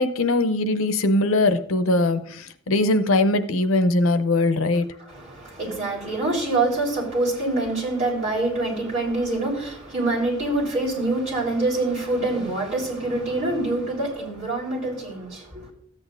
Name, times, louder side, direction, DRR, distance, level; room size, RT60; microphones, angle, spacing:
voice 1, 0.0-4.9, left 2 dB, 90° left, 0.7 m, -21 dB
voice 2, 5.1-15.7, right 2 dB, 35° right, 3.9 m, -25 dB
13.5 x 8.5 x 2.5 m
head